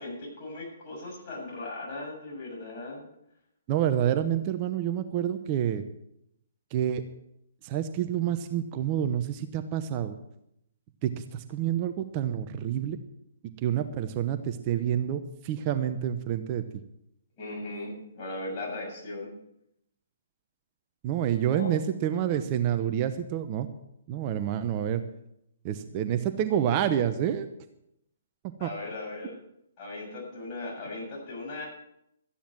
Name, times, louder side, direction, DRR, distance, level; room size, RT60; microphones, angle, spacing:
voice 1, 0.0-3.0 17.4-19.3 21.5-21.8 28.6-29.4 29.8-31.7, left 2 dB, 35° left, -2 dB, 7.4 m, -38 dB
voice 2, 3.7-5.8 6.7-7.0 7.6-10.2 11.0-13.0 13.6-16.6 21.0-23.7 24.1-25.0 25.6-27.5 28.6-28.7, right 10 dB, 35° right, 9 dB, 0.9 m, -28 dB
14.0 x 10.0 x 6.1 m, 0.79 s
hypercardioid pair, 135°, 0 cm